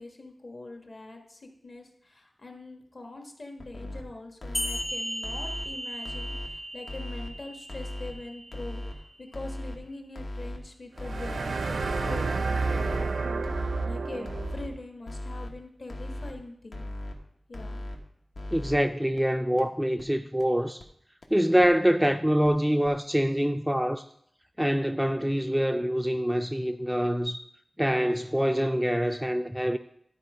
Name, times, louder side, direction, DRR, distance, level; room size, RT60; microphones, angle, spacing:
voice 1, 0.0-16.9 17.5-17.8, left 2 dB, 50° left, 1.4 m, -43 dB
sound 1, 3.6-4.0 4.4-4.8 5.2-5.6 6.0-6.5 6.9-7.3 7.7-8.1 8.5-8.9 9.3-9.8 10.2-10.6 11.0-11.4 11.8-12.2 12.6-13.0 13.4-13.9 14.3-14.7 15.1-15.5 15.9-16.3 16.7-17.1 17.5-18.0 18.3-18.8 19.2-19.3 19.6-19.7 20.0-20.1 20.4-20.5 20.8-20.9 21.2-21.3 21.6-21.7 22.0-22.1 22.4-22.5 22.8-22.9, left 1 dB, 70° left, 1.1 m, -37 dB
sound 2, 4.5-9.6, equal, 25° left, 0.8 m, -37 dB
sound 3, 11.0-14.7, right 4 dB, 90° right, 0.5 m, -30 dB
voice 2, 18.5-20.9 21.3-24.0 24.6-27.4 27.8-29.8, equal, 5° right, 0.3 m, -25 dB
12.0 x 4.4 x 4.9 m
wide cardioid pair, 105°, 0 cm